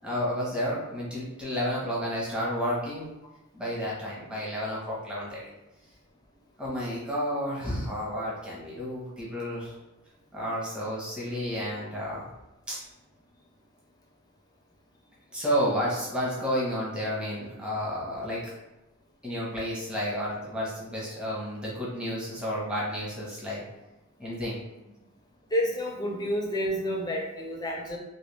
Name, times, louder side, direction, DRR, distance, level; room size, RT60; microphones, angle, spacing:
voice 1, 0.0-3.1 3.5-5.4 6.6-9.7 10.3-12.3 12.7-12.8 15.3-18.5 19.2-23.6 24.2-24.6 26.1-26.2, equal, 5° right, -6 dB, 0.9 m, -31 dB
voice 2, 25.5-28.0, equal, 20° left, 0 dB, 0.5 m, -29 dB
3.1 x 2.9 x 3.2 m, 0.98 s
head